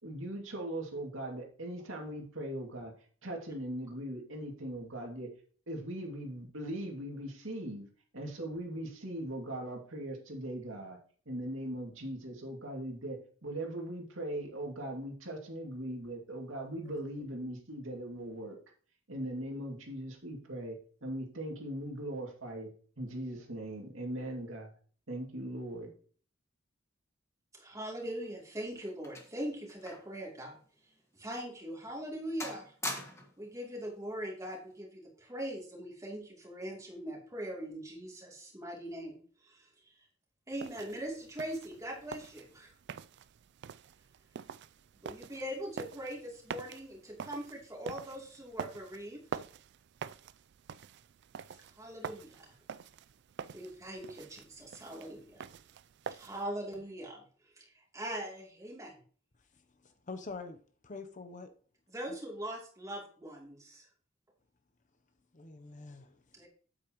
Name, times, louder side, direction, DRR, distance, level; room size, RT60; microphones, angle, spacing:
voice 1, 0.0-2.9 3.2-5.3 5.7-7.8 8.1-11.0 11.3-18.6 19.1-22.7 23.0-24.7 25.1-25.9, right 1 dB, 75° right, 2.4 m, -40 dB
voice 2, 27.5-30.6 31.1-32.7 33.4-39.9 40.5-42.7 45.0-49.2 51.6-52.6 53.5-55.4 56.1-59.0 61.9-63.9 66.3-66.5, right 1 dB, 15° right, 2.8 m, -41 dB
sound 1, 28.1-30.2 30.5-30.7 31.3-31.4 31.9-32.1 32.4-33.4 34.4-34.7, left 2 dB, 15° left, 1.4 m, -43 dB
sound 2, 40.5-56.5, right 7 dB, 60° right, 0.4 m, -46 dB
voice 3, 59.8-61.5 65.3-66.2, left 3 dB, 40° left, 0.7 m, -45 dB
8.7 x 8.2 x 3.0 m
head